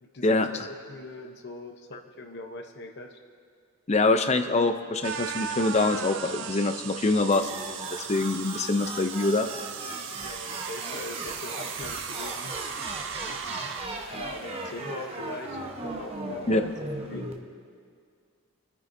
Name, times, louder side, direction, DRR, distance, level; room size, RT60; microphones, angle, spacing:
voice 1, 0.0-3.1 10.2-12.5 13.3-13.7 14.0-16.7 16.9-17.3, left 2 dB, 55° left, 3 dB, 0.8 m, -41 dB
voice 2, 3.9-9.5 16.5-16.6, left 2 dB, 30° left, 8 dB, 0.5 m, -25 dB
sound 1, 5.0-13.9, right 7 dB, 60° right, 0.5 m, -37 dB
sound 2, 7.3-17.3, right 2 dB, 30° right, 1.0 m, -37 dB
26.5 x 9.6 x 2.7 m, 2.1 s
head